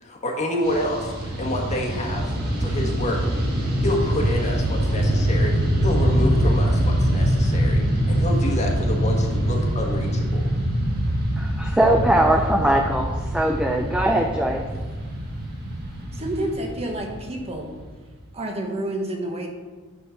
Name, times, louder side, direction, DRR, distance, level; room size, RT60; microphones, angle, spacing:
voice 1, 0.0-2.3 2.6-3.5 3.8-5.5 5.8-10.4, left 1 dB, 35° left, 0 dB, 1.4 m, -28 dB
Fixed-wing aircraft airplane, 0.6-18.1, equal, 45° right, 1.7 m, -24 dB
voice 2, 11.4-14.6, right 1 dB, 5° right, 2 dB, 0.5 m, -21 dB
voice 3, 16.1-17.7 18.3-19.5, right 1 dB, 30° right, 1 dB, 1.2 m, -29 dB
9.8 x 4.4 x 5.8 m, 1.4 s
head